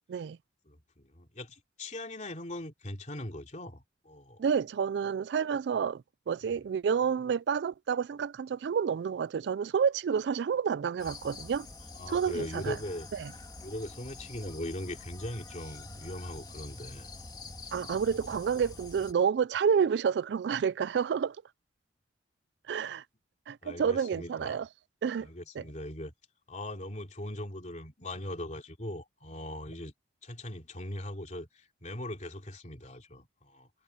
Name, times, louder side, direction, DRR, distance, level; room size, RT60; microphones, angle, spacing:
voice 1, 0.6-4.4 6.5-6.6 11.9-13.1 13.6-17.1 17.7-17.9 23.6-24.6 25.2-26.1 26.5-29.9 30.2-33.7, left 1 dB, 40° left, 3.1 m, -40 dB
voice 2, 4.4-11.7 12.1-12.8 13.2-13.3 17.7-21.4 22.7-23.0 23.5-24.7 25.0-25.3 25.6-25.7, right 7 dB, 70° right, 0.3 m, -29 dB
sound 1, 11.0-19.1, left 2 dB, 25° left, 3.1 m, -46 dB
head